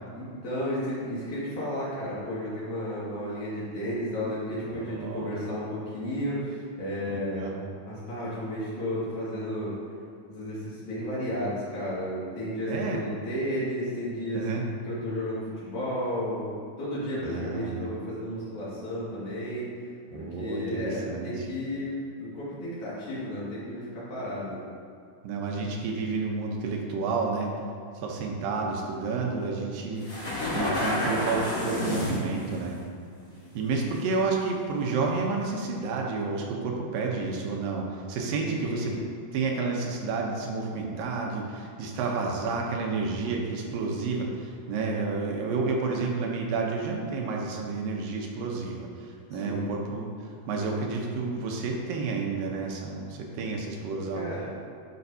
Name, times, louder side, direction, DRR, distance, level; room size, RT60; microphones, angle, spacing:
voice 1, 0.1-9.8 10.3-14.5 14.8-19.7 20.1-24.6 38.4-39.0 49.4-49.6 54.1-54.5, equal, 65° left, -8 dB, 3.2 m, -33 dB
voice 2, 4.7-5.3 7.1-7.6 12.7-13.0 14.3-14.7 17.2-17.9 20.1-21.5 25.2-27.5 28.0-32.8 33.5-38.9 39.3-50.1 50.5-54.3, right 4 dB, 85° right, 0 dB, 2.5 m, -30 dB
sound 1, 30.0-32.6 33.5-34.0 34.4-34.5 35.2-35.3, left 1 dB, 85° left, 0.7 m, -29 dB
11.0 x 5.1 x 2.7 m, 2.4 s
omnidirectional pair, 3.9 m